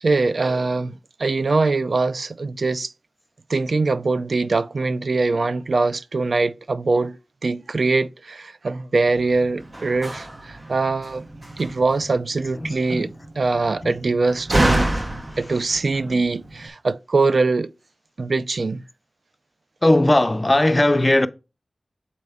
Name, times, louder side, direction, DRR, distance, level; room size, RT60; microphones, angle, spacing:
voice 1, 0.0-2.9 3.5-7.2 7.4-11.2 11.6-13.1 13.4-14.9 15.4-17.7 18.2-18.8, right 3 dB, 75° right, 0.3 m, -22 dB
Slam, 9.1-16.7, right 1 dB, 35° right, 0.7 m, -28 dB
voice 2, 12.6-13.1 13.8-14.0 14.9-16.1 19.8-21.3, left 1 dB, 30° left, 0.5 m, -20 dB
6.7 x 4.1 x 3.5 m
cardioid pair, 45°, 0 cm